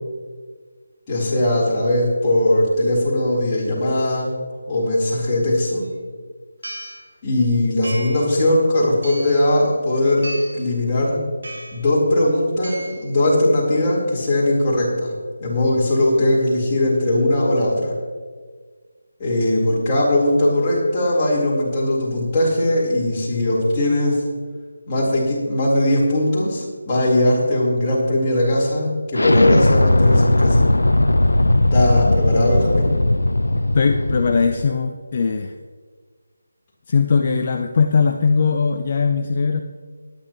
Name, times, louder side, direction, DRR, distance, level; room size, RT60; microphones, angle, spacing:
voice 1, 1.1-4.4 4.7-5.8 7.2-11.2 11.7-15.1 15.4-17.9 19.2-24.2 24.9-30.7 31.7-32.9, left 1 dB, 20° left, -6 dB, 4.0 m, -19 dB
sound 1, 5.8-5.9 6.6-7.0 7.8-8.3 9.0-9.4 10.2-10.7 11.4-11.8 12.6-13.1, right 1 dB, 60° right, 3.8 m, -34 dB
Explosion, 29.1-34.7, left 1 dB, 75° left, 0.7 m, -17 dB
voice 2, 33.7-35.5 36.9-39.6, left 5 dB, 40° left, 6 dB, 0.6 m, -19 dB
20.0 x 10.0 x 3.1 m, 1.6 s
figure-of-eight pair, 155°, 0 cm